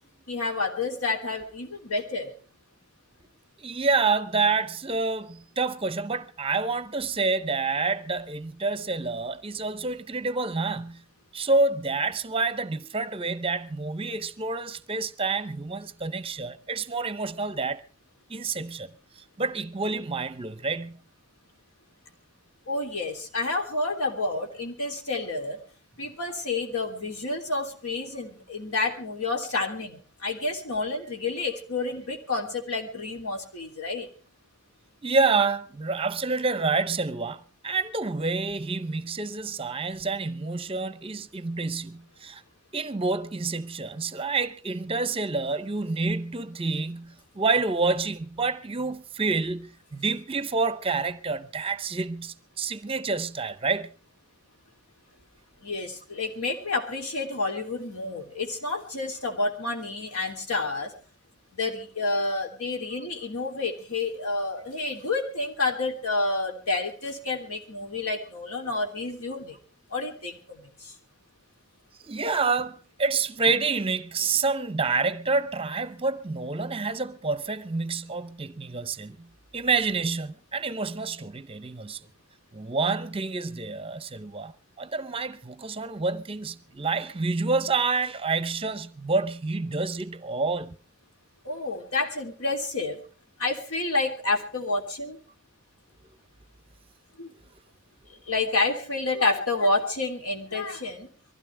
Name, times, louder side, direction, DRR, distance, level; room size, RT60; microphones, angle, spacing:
voice 1, 0.3-2.3 22.7-25.6 26.0-34.1 55.6-60.9 61.5-69.6 69.9-70.9 91.4-93.0 93.4-95.2 97.2-97.3 98.1-101.1, left 3 dB, 80° left, 3.2 m, -29 dB
voice 2, 3.6-11.0 11.3-17.8 18.3-18.9 19.4-21.0 35.0-42.4 42.7-53.9 72.0-79.3 79.5-82.0 82.5-84.5 84.8-90.7, right 4 dB, 25° right, 0.7 m, -28 dB
23.5 x 16.0 x 3.4 m
head